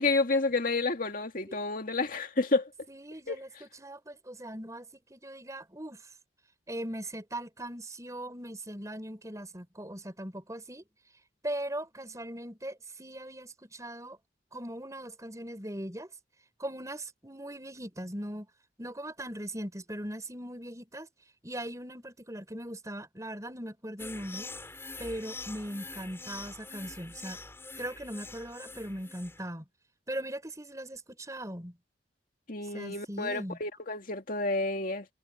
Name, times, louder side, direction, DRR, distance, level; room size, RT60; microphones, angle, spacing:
voice 1, 0.0-2.7 3.3-3.4 32.5-35.1, left 3 dB, 50° left, 2.2 m, -30 dB
voice 2, 2.9-6.0 6.7-10.8 11.4-14.2 14.5-16.1 16.6-18.5 18.8-21.1 21.4-24.5 25.0-27.4 27.8-29.6 30.1-31.8 32.7-33.6, right 1 dB, 15° right, 6.2 m, -39 dB
sound 1, 24.0-29.5, left 3 dB, 15° left, 6.3 m, -44 dB
head